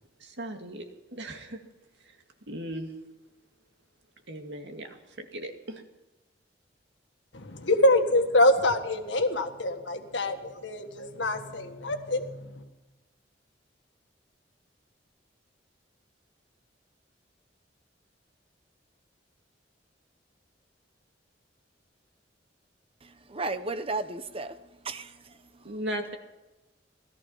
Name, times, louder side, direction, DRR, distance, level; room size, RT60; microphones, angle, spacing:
voice 1, 0.2-1.6 2.0-2.2 2.5-2.9 4.3-5.8 25.6-26.2, right 1 dB, 70° right, 2.1 m, -37 dB
voice 2, 7.3-12.6, left 1 dB, 85° left, 1.7 m, -25 dB
voice 3, 23.0-25.7, right 3 dB, 30° right, 0.9 m, -35 dB
17.5 x 13.5 x 5.6 m
head